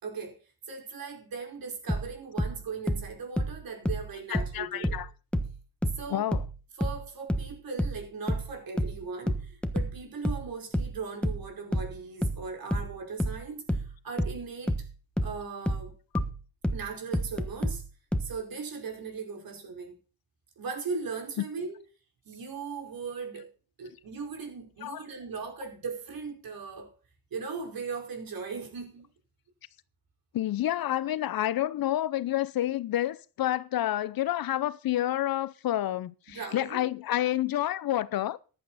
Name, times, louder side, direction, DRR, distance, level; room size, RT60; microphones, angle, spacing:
voice 1, 0.0-0.4 0.7-5.0 6.0-6.3 6.8-14.9 15.2-15.9 16.7-17.8 18.2-20.0 20.6-21.8 22.2-23.5 23.8-26.9 27.3-29.1 36.3-36.8, right 5 dB, 60° right, 5.1 m, -38 dB
sound 1, 1.9-5.1 5.3-18.4, equal, 5° left, 1.3 m, -30 dB
voice 2, 4.3-5.1 6.1-6.4 21.4-21.5 24.8-25.0 30.3-38.4, left 13 dB, 60° left, 0.7 m, -29 dB
14.5 x 11.0 x 4.2 m
cardioid pair, 130°, 40 cm